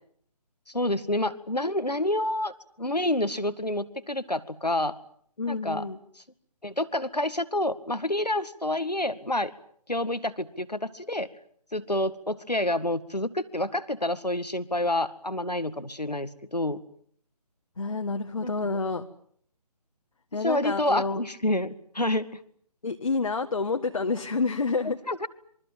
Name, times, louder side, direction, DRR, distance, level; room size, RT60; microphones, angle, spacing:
voice 1, 0.7-2.5 2.8-5.0 5.5-5.8 6.6-9.5 9.9-11.3 11.7-16.8 18.4-18.5 20.4-22.4 25.1-25.3, left 1 dB, 90° left, 13 dB, 2.1 m, -28 dB
voice 2, 5.4-6.0 17.8-19.1 20.3-21.2 22.8-25.0, left 4 dB, 55° left, 5 dB, 1.9 m, -28 dB
27.0 x 24.0 x 7.6 m, 0.62 s
figure-of-eight pair, 150°, 20 cm